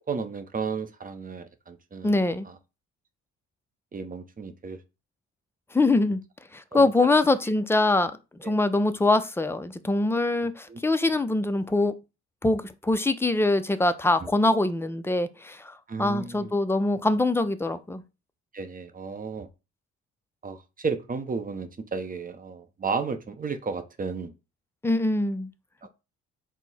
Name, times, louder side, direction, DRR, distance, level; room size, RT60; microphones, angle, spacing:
voice 1, 0.1-2.5 3.9-4.8 6.7-6.9 8.4-8.5 10.7-10.8 14.2-14.3 15.9-16.5 18.5-19.5 20.4-24.3, right 5 dB, 30° right, 0.7 m, -33 dB
voice 2, 2.0-2.5 5.7-6.2 6.5-8.1 8.4-11.9 12.4-18.0 24.8-25.5, left 2 dB, 10° left, 0.4 m, -23 dB
4.5 x 2.1 x 4.0 m
cardioid pair, 90°, 30 cm